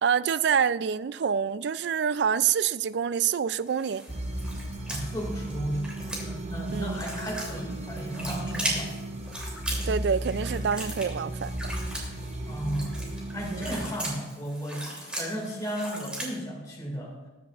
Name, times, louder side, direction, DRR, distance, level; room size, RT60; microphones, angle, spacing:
voice 1, 0.0-4.1 6.7-7.0 9.9-11.7 13.5-13.7, right 7 dB, 60° right, 0.3 m, -26 dB
sound 1, 3.6-16.3, right 1 dB, 5° right, 3.0 m, -38 dB
sound 2, 4.1-13.8, right 1 dB, 35° right, 1.1 m, -35 dB
voice 2, 4.9-8.9 12.5-13.0 13.3-17.2, equal, 20° left, 2.2 m, -34 dB
21.0 x 10.0 x 2.5 m
head